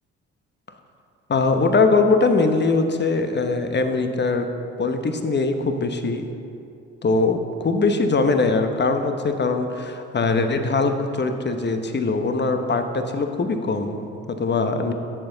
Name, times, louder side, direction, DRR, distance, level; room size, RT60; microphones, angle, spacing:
voice 1, 1.3-4.5 4.8-6.3 7.0-14.9, left 3 dB, 30° left, 7 dB, 1.0 m, -21 dB
13.5 x 6.9 x 4.0 m, 2.6 s
hypercardioid pair, 55°, 36 cm